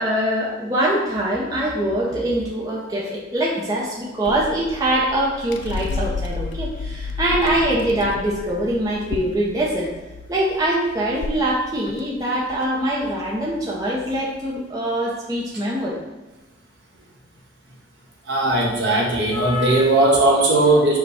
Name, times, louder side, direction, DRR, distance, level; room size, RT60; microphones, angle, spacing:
voice 1, 0.0-9.9 10.3-16.0, right 1 dB, 20° right, -5 dB, 0.5 m, -23 dB
sound 1, 4.2-14.6, left 4 dB, 65° left, 0.3 m, -33 dB
voice 2, 18.2-21.0, right 2 dB, 65° right, -3 dB, 1.0 m, -18 dB
4.9 x 2.2 x 4.7 m, 1.1 s
head